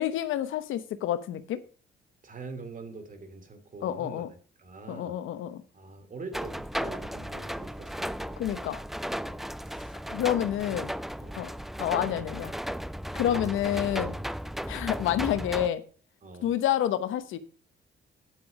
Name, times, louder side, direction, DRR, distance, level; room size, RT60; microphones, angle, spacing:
voice 1, 0.0-1.6 3.8-4.3 4.9-5.6 8.4-8.8 10.1-10.9 11.4-11.5 11.8-12.5 13.1-14.1 14.7-15.8 16.4-17.4, left 11 dB, 85° left, 13 dB, 1.0 m, -28 dB
voice 2, 2.2-4.2 4.6-5.2 5.7-8.4 9.2-10.2 10.7-10.8 11.2-11.4 13.2-13.6 16.2-16.5, right 3 dB, 40° right, 8 dB, 2.8 m, -44 dB
sound 1, 6.3-15.7, equal, ahead, 0.4 m, -35 dB
9.2 x 8.0 x 5.3 m, 0.41 s
cardioid pair, 90°, 20 cm